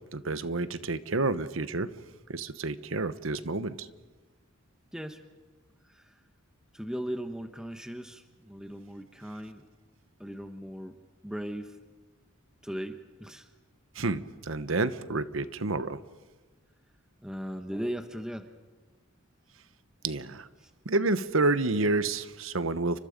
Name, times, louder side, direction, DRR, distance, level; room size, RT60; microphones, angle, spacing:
voice 1, 0.1-1.9 2.3-3.9 13.9-16.0 20.0-20.5 20.8-23.0, right 3 dB, 75° right, 13 dB, 1.1 m, -29 dB
voice 2, 5.8-6.2 6.7-9.6 10.2-11.0 11.2-11.8 12.6-13.5 17.2-18.5 20.6-20.7, equal, 5° right, 7 dB, 1.1 m, -38 dB
30.0 x 25.0 x 5.3 m, 1.3 s
head